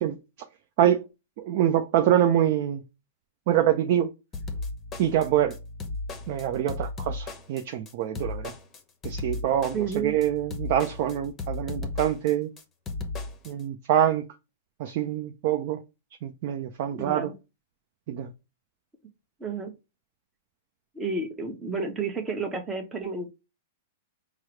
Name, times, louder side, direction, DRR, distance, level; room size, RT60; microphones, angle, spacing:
voice 1, 1.4-2.8 3.5-4.1 5.0-5.5 6.3-8.5 9.0-9.8 10.0-12.5 13.5-14.2 14.8-15.8 16.2-17.3 18.1-18.3, right 11 dB, 55° right, 0.5 m, -25 dB
sound 1, 4.3-13.5, left 3 dB, 20° left, 0.8 m, -35 dB
voice 2, 9.7-10.2 16.9-17.3 19.4-19.7 20.9-23.3, right 4 dB, 15° right, 0.9 m, -31 dB
4.6 x 2.0 x 4.4 m
hypercardioid pair, 130°, 0 cm